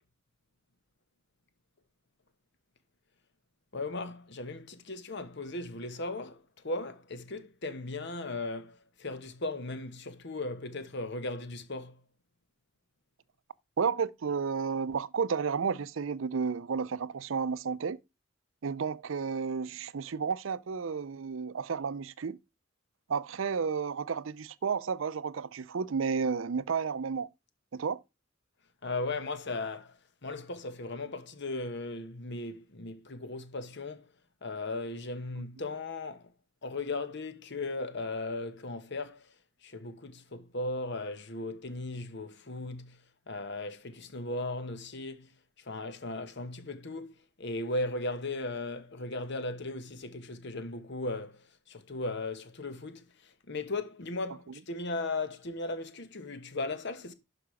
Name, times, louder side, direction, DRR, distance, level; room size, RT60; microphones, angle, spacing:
voice 1, 3.7-12.0 28.8-34.1 34.4-36.3 36.6-39.3 39.6-43.0 43.3-45.3 45.6-57.1, left 2 dB, 60° left, 1.2 m, -37 dB
voice 2, 13.8-18.0 18.6-22.4 23.1-27.3 27.7-28.0, right 6 dB, 75° right, 0.5 m, -32 dB
11.5 x 5.0 x 4.9 m
head